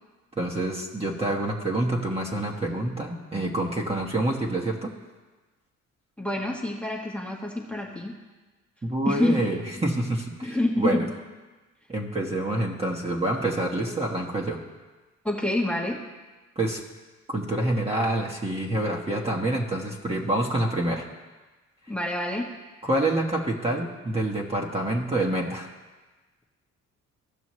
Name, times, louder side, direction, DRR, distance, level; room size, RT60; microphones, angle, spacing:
voice 1, 0.4-4.9 8.8-11.1 11.9-14.6 16.5-16.8 17.3-21.0 22.8-25.7, right 1 dB, 20° right, -2 dB, 1.3 m, -27 dB
voice 2, 6.2-8.2 9.0-9.4 10.4-11.0 15.2-16.0 21.9-22.5, left 1 dB, 5° left, -1 dB, 1.3 m, -27 dB
15.5 x 6.1 x 3.1 m, 1.2 s
cardioid pair, 90°, 30 cm